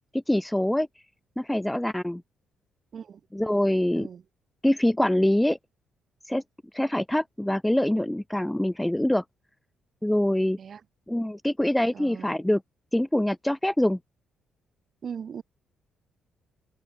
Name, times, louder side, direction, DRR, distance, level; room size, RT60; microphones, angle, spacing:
voice 1, 0.1-0.9 1.4-2.2 3.3-4.1 4.6-5.6 6.2-6.4 6.7-9.2 10.0-10.6 11.1-12.6 12.9-14.0, left 1 dB, 5° left, 0.5 m, -24 dB
voice 2, 11.9-12.3 15.0-15.4, right 7 dB, 50° right, 6.4 m, -39 dB
open air
cardioid pair, 90°, 0 cm